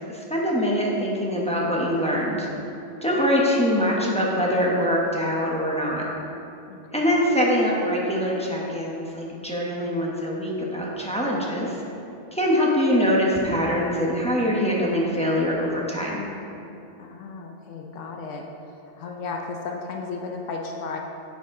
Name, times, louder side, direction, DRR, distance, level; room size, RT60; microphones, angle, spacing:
voice 1, 0.0-2.5 3.0-6.1 6.9-11.8 12.3-16.2, equal, 5° left, -4 dB, 0.9 m, -23 dB
voice 2, 6.7-7.0 17.0-18.4 19.0-21.0, left 4 dB, 85° left, 1 dB, 1.0 m, -34 dB
9.0 x 5.1 x 3.7 m, 2.8 s
omnidirectional pair, 1.3 m